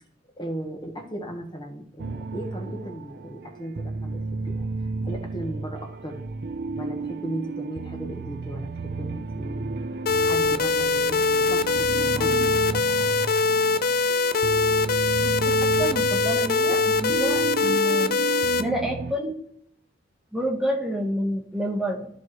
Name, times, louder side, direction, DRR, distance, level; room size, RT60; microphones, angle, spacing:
voice 1, 0.4-4.6 5.0-6.2 6.8-9.8 10.2-12.8, right 1 dB, 25° left, 2 dB, 1.3 m, -36 dB
sound 1, 2.0-19.1, right 3 dB, 60° right, 0.5 m, -33 dB
sound 2, 10.1-18.6, left 3 dB, 50° left, 0.5 m, -22 dB
voice 2, 15.2-18.2 18.6-19.3 20.3-22.1, equal, 5° right, 0 dB, 1.1 m, -29 dB
14.0 x 4.7 x 3.1 m, 0.65 s
head